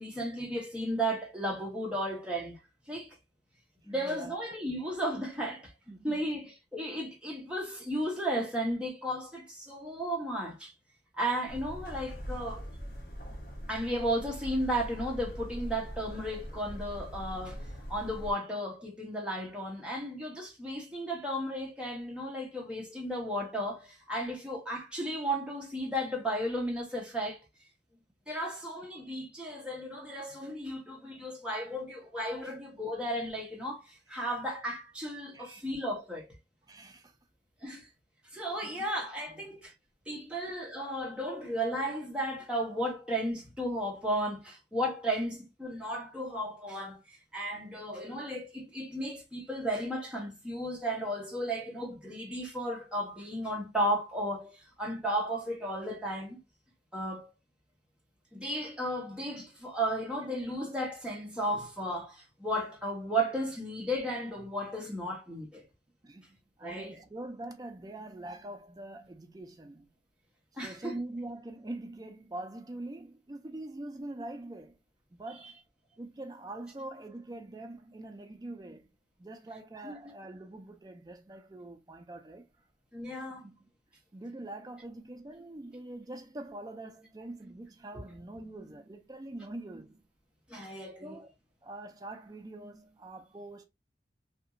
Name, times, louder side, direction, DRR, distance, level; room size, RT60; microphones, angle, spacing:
voice 1, 0.0-2.6 2.9-3.2 3.8-5.7 6.0-10.7 11.1-12.7 13.7-27.4 28.3-36.3 37.6-37.9 38.3-39.7 40.1-56.4 56.9-57.3 58.3-65.6 66.6-66.9 70.6-71.0 79.8-80.0 82.9-83.4 90.5-91.2, right 1 dB, 5° right, 0.8 m, -34 dB
voice 2, 3.9-4.4 5.9-6.4 32.4-32.5 35.3-35.6 36.7-37.1 38.6-38.9 39.3-39.6 40.3-40.4 66.0-69.9 70.5-74.8 75.1-75.6 76.0-78.9 79.2-82.5 83.3-83.7 84.1-90.0 91.0-91.3 91.6-93.7, right 2 dB, 20° right, 0.3 m, -44 dB
sound 1, 11.5-18.3, equal, 50° left, 1.0 m, -42 dB
2.8 x 2.6 x 2.5 m
head